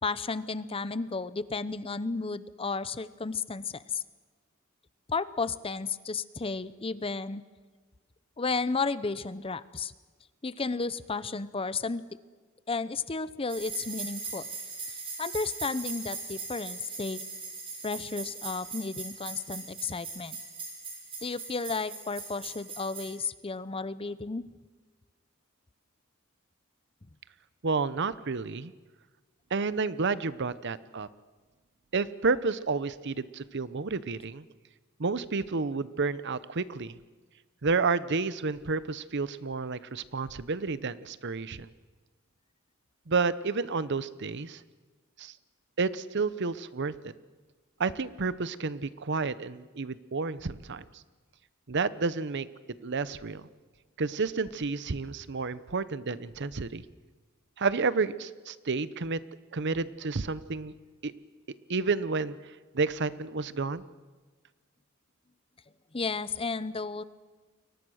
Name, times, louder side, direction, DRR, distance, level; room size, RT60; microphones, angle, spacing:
voice 1, 0.0-4.0 5.1-7.4 8.4-9.9 10.4-12.0 12.7-14.5 15.2-17.2 17.8-20.4 21.2-24.4 65.9-67.0, left 4 dB, 25° left, 15 dB, 0.7 m, -33 dB
sound 1, 13.5-23.1, right 4 dB, 25° right, 6.3 m, -40 dB
voice 2, 27.6-28.7 29.5-31.1 31.9-34.4 35.0-37.0 37.6-41.7 43.1-44.6 45.2-45.3 45.8-47.1 47.8-50.8 51.7-52.5 52.8-53.5 54.0-56.8 57.6-59.2 59.5-60.7 61.0-61.1 61.7-62.4 62.7-63.8, right 4 dB, 55° right, 16 dB, 0.8 m, -30 dB
29.5 x 23.0 x 6.4 m, 1.3 s
head